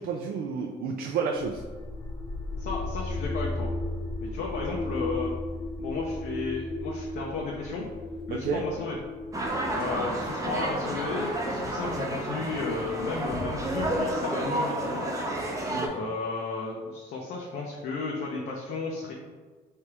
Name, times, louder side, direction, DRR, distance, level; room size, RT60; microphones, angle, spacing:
voice 1, 0.0-1.6 8.3-8.6 15.7-15.9, right 5 dB, 65° right, 1 dB, 0.4 m, -30 dB
sound 1, 1.4-13.2, left 2 dB, 15° left, 1.0 m, -35 dB
voice 2, 2.6-3.7 4.2-5.3 5.8-7.8 8.3-9.0 9.7-15.0 15.9-19.1, left 4 dB, 65° left, -2 dB, 0.7 m, -34 dB
sound 2, 9.3-15.9, right 1 dB, 20° right, 0.7 m, -30 dB
3.3 x 2.8 x 4.6 m, 1.4 s
cardioid pair, 110°, 17 cm